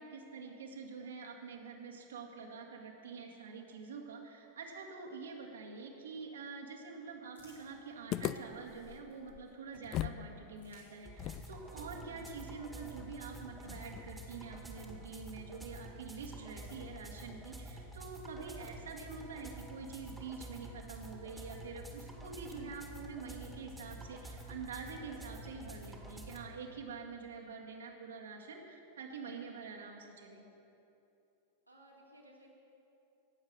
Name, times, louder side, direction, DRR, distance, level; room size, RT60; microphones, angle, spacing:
voice 1, 0.0-30.4, right 5 dB, 65° right, 0 dB, 1.9 m, -46 dB
sound 1, 6.6-9.5 10.4-15.0 15.9-17.4, left 1 dB, 75° left, 3.6 m, -70 dB
sound 2, 8.1-10.3 10.5-10.6 11.2-14.3, left 12 dB, 35° left, 0.4 m, -42 dB
sound 3, 11.1-26.4, right 1 dB, 5° right, 1.9 m, -49 dB
voice 2, 31.7-32.5, right 1 dB, 85° right, -3 dB, 2.5 m, -60 dB
18.0 x 7.3 x 6.6 m, 2.8 s
figure-of-eight pair, 90°, 0 cm